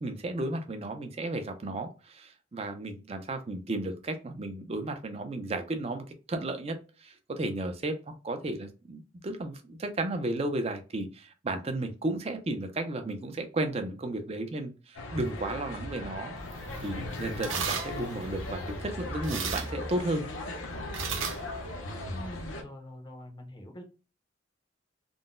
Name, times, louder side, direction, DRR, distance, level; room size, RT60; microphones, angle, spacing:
voice 1, 0.0-8.0 8.2-16.3 16.8-20.2, right 2 dB, 30° right, 7 dB, 0.4 m, -34 dB
sound 1, 14.9-22.6, left 1 dB, 90° left, 0.7 m, -38 dB
sound 2, 16.4-22.4, right 6 dB, 80° right, 0.5 m, -39 dB
voice 2, 22.1-23.8, equal, 25° left, 2 dB, 0.6 m, -44 dB
3.7 x 2.1 x 2.4 m, 0.33 s
head